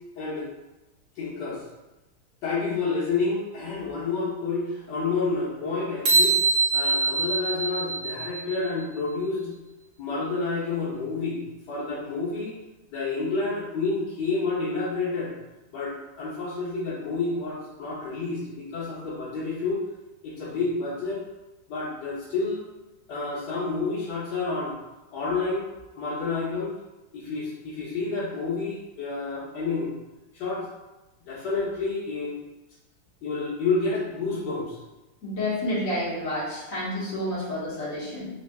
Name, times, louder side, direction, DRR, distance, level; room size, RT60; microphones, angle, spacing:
voice 1, 0.1-0.5 1.2-1.6 2.4-6.4 6.7-9.5 10.0-11.4 11.7-12.6 12.9-15.3 15.7-19.8 20.2-21.2 21.7-22.6 23.1-24.7 25.1-25.7 25.9-26.7 27.1-29.9 30.3-30.7 31.2-32.3 33.2-34.8, left 3 dB, 65° left, -8 dB, 1.3 m, -29 dB
sound 1, 6.1-8.7, right 3 dB, 55° right, 1.2 m, -23 dB
voice 2, 35.2-38.3, left 1 dB, 50° left, -7 dB, 1.4 m, -29 dB
3.4 x 3.3 x 2.3 m, 1.0 s
omnidirectional pair, 2.1 m